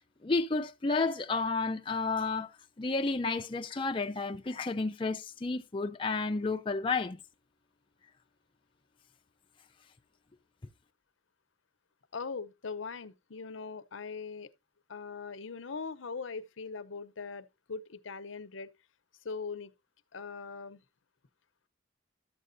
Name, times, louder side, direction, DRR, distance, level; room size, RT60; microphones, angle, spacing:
voice 1, 0.2-2.5 2.8-7.2, left 3 dB, 25° left, 0.5 m, -31 dB
voice 2, 12.1-14.5 14.9-18.7 19.2-19.7 20.1-20.8, left 4 dB, 80° left, 0.8 m, -41 dB
12.0 x 7.6 x 2.6 m
head